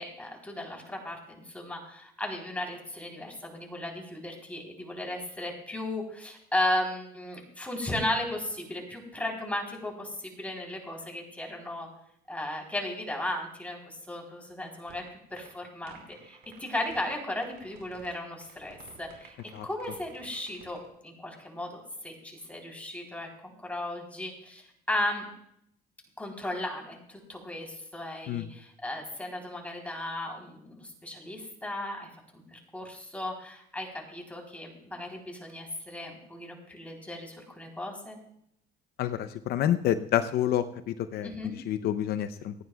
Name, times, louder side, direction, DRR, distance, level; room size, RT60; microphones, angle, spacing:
voice 1, 0.0-11.9 12.3-15.0 15.3-19.4 19.6-25.3 26.2-38.2 41.2-41.5, left 1 dB, 10° left, 0 dB, 3.5 m, -35 dB
sound 1, 14.9-15.1 15.4-15.5 15.9-17.1 17.4-18.1 18.4-20.9, right 8 dB, 80° right, 4.5 m, -53 dB
voice 2, 39.0-40.6 41.1-41.3 41.7-42.5, left 11 dB, 70° left, 10 dB, 0.6 m, -27 dB
28.0 x 9.5 x 2.3 m, 0.71 s
cardioid pair, 110°, 17 cm